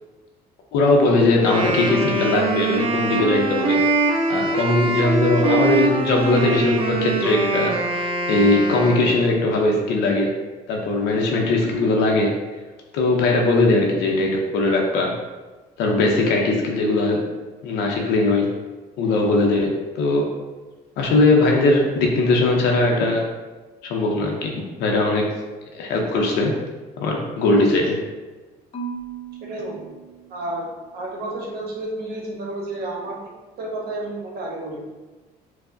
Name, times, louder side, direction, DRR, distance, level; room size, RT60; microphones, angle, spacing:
voice 1, 0.7-3.8 4.3-10.3 10.7-12.3 12.9-15.1 15.8-17.3 17.6-18.5 19.0-20.3 21.0-23.2 23.8-25.3 25.7-26.6 27.0-28.1, left 2 dB, 90° left, 0 dB, 0.5 m, -20 dB
Wind instrument woodwind instrument, 1.3-9.4, right 3 dB, 35° right, 0.4 m, -23 dB
Marimba xylophone / Wood, 28.7-30.9, right 6 dB, 35° left, 0.5 m, -37 dB
voice 2, 29.4-29.9 30.3-30.7 30.9-33.3 33.6-34.9, right 1 dB, 70° right, -1 dB, 0.9 m, -31 dB
4.5 x 2.0 x 2.5 m, 1.2 s
cardioid pair, 110°, 17 cm